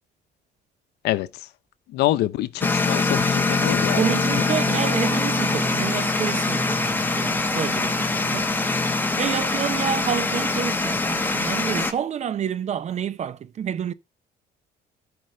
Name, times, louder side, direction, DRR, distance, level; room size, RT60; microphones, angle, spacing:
voice 1, 1.0-1.5 1.9-4.0 4.3-4.4 5.4-5.5, left 15 dB, 80° left, 0.7 m, -26 dB
sound 1, 2.6-11.9, left 3 dB, 10° left, 1.1 m, -23 dB
voice 2, 4.0-8.5 9.2-13.9, right 8 dB, 40° right, 0.6 m, -28 dB
11.5 x 5.2 x 5.4 m
cardioid pair, 110°, 17 cm